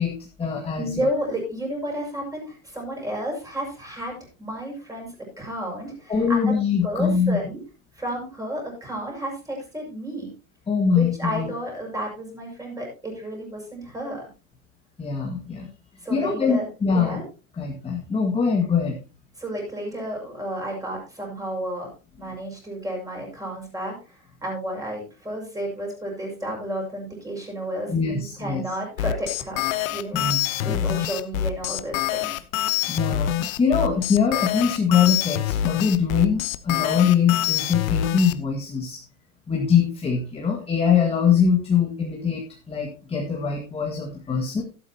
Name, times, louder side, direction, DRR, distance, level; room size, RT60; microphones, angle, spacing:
voice 1, 0.0-1.1 6.1-7.4 10.7-11.5 15.0-15.7 16.1-17.2 17.6-19.0 22.2-22.4 27.9-28.6 30.1-30.9 32.9-39.0 39.5-44.6, left 6 dB, 15° left, 0 dB, 1.9 m, -23 dB
voice 2, 0.8-5.1 5.4-6.5 6.8-7.6 7.9-10.3 10.9-14.2 16.0-16.7 16.9-17.2 19.4-21.9 22.2-29.6 29.9-30.2 30.6-32.4, equal, 10° right, -1 dB, 6.2 m, -31 dB
sound 1, 29.0-38.3, left 12 dB, 65° left, 1.1 m, -25 dB
12.5 x 12.0 x 2.9 m, 0.33 s
hypercardioid pair, 125°, 43 cm